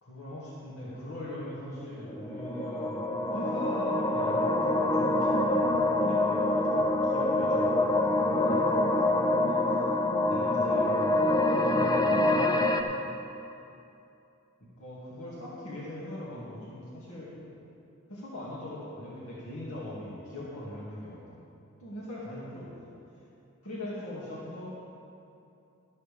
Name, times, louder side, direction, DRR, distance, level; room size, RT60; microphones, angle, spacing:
voice 1, 0.0-9.9 10.3-11.2 11.5-12.9 14.6-17.4 18.1-21.4 21.8-23.0 23.6-24.7, left 1 dB, 85° left, -7 dB, 2.3 m, -41 dB
sound 1, 2.1-12.8, left 2 dB, 20° left, 0.5 m, -26 dB
12.5 x 12.0 x 3.5 m, 2.7 s
head